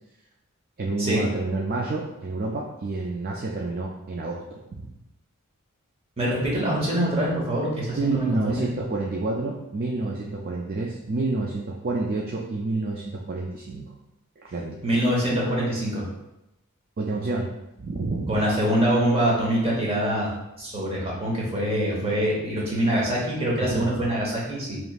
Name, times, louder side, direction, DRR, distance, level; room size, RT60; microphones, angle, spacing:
voice 1, 0.8-4.9 8.0-13.9 14.4-14.8 17.0-17.5 17.8-18.4 23.6-23.9, right 3 dB, 45° right, -2 dB, 0.4 m, -29 dB
voice 2, 6.2-8.7 14.8-16.1 18.3-20.3 20.6-24.8, right 1 dB, 30° right, -4 dB, 1.1 m, -24 dB
5.0 x 3.0 x 2.4 m, 0.90 s
head